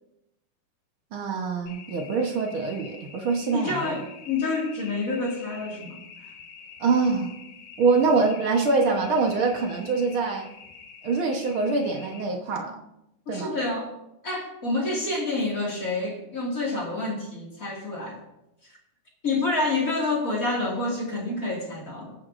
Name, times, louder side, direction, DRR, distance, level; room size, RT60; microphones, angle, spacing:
voice 1, 1.1-4.0 6.8-7.3 7.8-10.5 11.0-12.8 13.3-13.5, right 4 dB, 60° right, 2 dB, 1.4 m, -24 dB
sound 1, 1.7-12.2, left 6 dB, 90° left, 2.8 m, -46 dB
voice 2, 3.5-6.0 13.3-13.9 14.2-18.2 18.6-18.8 19.2-22.2, left 2 dB, 30° left, -2 dB, 2.2 m, -28 dB
21.0 x 9.5 x 2.6 m, 0.86 s
omnidirectional pair, 3.9 m